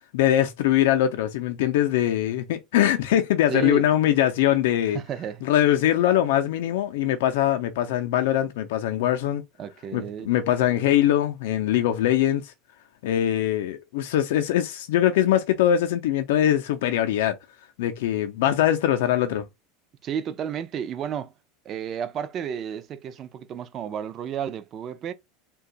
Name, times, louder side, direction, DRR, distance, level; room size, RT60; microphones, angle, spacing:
voice 1, 0.1-5.0 5.4-9.4 9.9-12.5 13.0-17.4 17.8-19.5, left 11 dB, 80° left, 0.4 m, -22 dB
voice 2, 3.5-3.8 4.9-5.5 9.6-10.3 20.0-21.3 21.7-25.1, right 8 dB, 35° right, 0.4 m, -32 dB
2.6 x 2.3 x 3.8 m
supercardioid pair, 145°, 0 cm